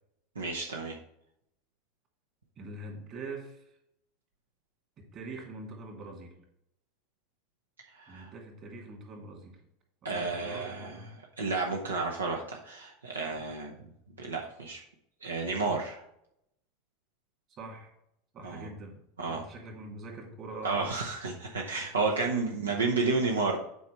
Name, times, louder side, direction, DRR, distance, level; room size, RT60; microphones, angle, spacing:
voice 1, 0.4-1.0 7.9-8.3 10.0-11.0 11.4-13.7 14.2-14.8 15.2-16.0 18.4-18.7 19.2-19.4 20.6-23.6, right 3 dB, 80° right, 0 dB, 0.8 m, -31 dB
voice 2, 2.6-3.7 5.0-6.4 8.1-9.6 10.1-11.1 13.3-13.4 17.6-17.9 18.3-21.0 22.0-22.5 22.8-23.3, right 2 dB, 40° right, 1 dB, 2.5 m, -44 dB
8.3 x 4.7 x 4.5 m, 0.78 s
figure-of-eight pair, 80°, 0 cm